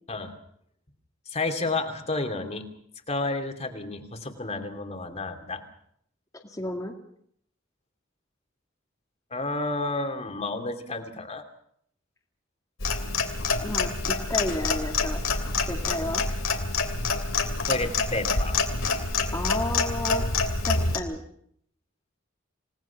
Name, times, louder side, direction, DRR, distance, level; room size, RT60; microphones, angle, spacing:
voice 1, 1.3-2.7 3.1-5.6 9.3-11.4 17.7-18.6, left 2 dB, 35° left, 5 dB, 2.7 m, -31 dB
voice 2, 6.4-6.9 13.6-15.2 15.7-16.2 19.3-20.3 20.6-21.2, left 1 dB, 15° left, -1 dB, 2.2 m, -32 dB
Clock, 12.8-21.0, left 4 dB, 70° left, 3.0 m, -27 dB
28.5 x 19.0 x 5.9 m, 0.69 s
head